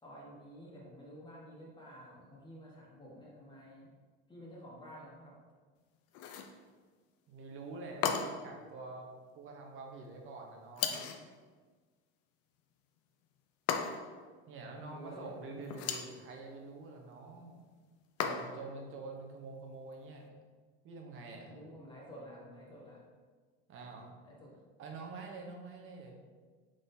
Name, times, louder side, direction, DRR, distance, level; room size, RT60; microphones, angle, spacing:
voice 1, 0.0-3.9 4.3-5.3 14.7-15.4 21.5-23.0 24.3-24.5, equal, 15° left, -5 dB, 1.3 m, -51 dB
sound 1, 6.1-6.6 8.0-8.5 10.8-11.3 13.7-14.2 15.6-16.2 18.2-18.7, left 7 dB, 50° left, 0.5 m, -35 dB
voice 2, 7.3-9.1 9.4-11.0 14.5-17.6 18.2-20.2 20.8-21.6 23.7-24.1 24.8-26.1, right 3 dB, 40° right, 1 dB, 0.8 m, -46 dB
3.8 x 3.7 x 2.7 m, 1.5 s
supercardioid pair, 110°, 31 cm